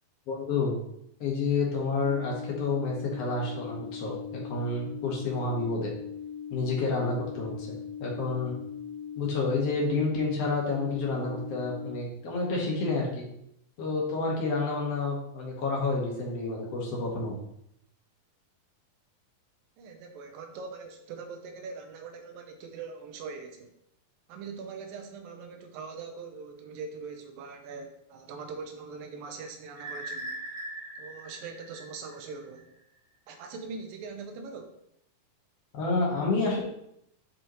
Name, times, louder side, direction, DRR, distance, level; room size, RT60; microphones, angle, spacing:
voice 1, 0.3-0.8 1.2-5.9 6.5-8.6 9.2-13.3 13.8-17.4 35.7-36.6, left 3 dB, 50° left, -3 dB, 2.2 m, -29 dB
sound 1, 2.0-12.0, left 7 dB, 85° left, 2.5 m, -40 dB
voice 2, 19.8-23.7 24.3-30.4 31.0-32.7 33.3-34.7, right 4 dB, 75° right, 5 dB, 2.5 m, -42 dB
sound 2, 29.7-32.6, right 1 dB, 5° right, 1.5 m, -40 dB
9.3 x 4.8 x 3.1 m, 0.75 s
omnidirectional pair, 4.2 m